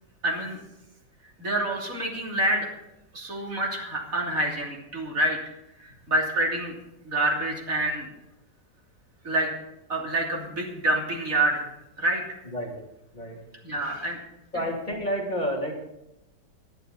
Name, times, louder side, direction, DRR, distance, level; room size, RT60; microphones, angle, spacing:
voice 1, 0.2-0.6 1.4-2.7 3.1-5.4 5.8-6.7 7.1-8.1 9.2-9.5 9.9-11.7 12.0-12.2 13.6-14.2, right 1 dB, 50° right, -1 dB, 3.4 m, -27 dB
voice 2, 14.5-15.8, equal, 25° left, -1 dB, 3.1 m, -29 dB
19.5 x 11.0 x 4.1 m, 0.88 s
omnidirectional pair, 1.9 m